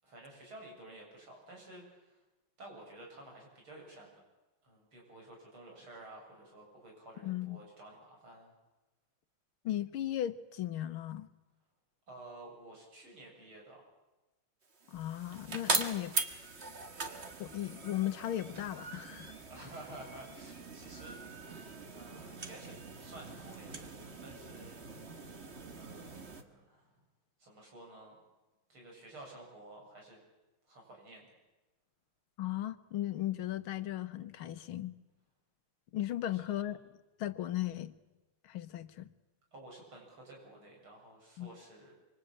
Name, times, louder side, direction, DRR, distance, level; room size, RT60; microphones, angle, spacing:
voice 1, 0.0-2.2 2.6-4.1 4.6-8.5 12.1-13.8 19.5-21.6 21.9-23.9 24.2-24.8 25.7-26.9 27.4-28.1 28.7-30.2 30.7-31.3 36.3-36.7 39.5-41.9, right 1 dB, 85° right, 8.4 m, -52 dB
voice 2, 7.2-7.6 9.7-11.3 14.9-16.2 17.4-19.3 32.4-35.0 35.9-36.8 37.2-37.9 38.4-39.1 41.4-41.5, left 13 dB, 80° left, 1.9 m, -36 dB
sound 1, 14.7-26.4, right 3 dB, 35° right, 1.8 m, -41 dB
25.5 x 25.0 x 8.7 m
omnidirectional pair, 2.3 m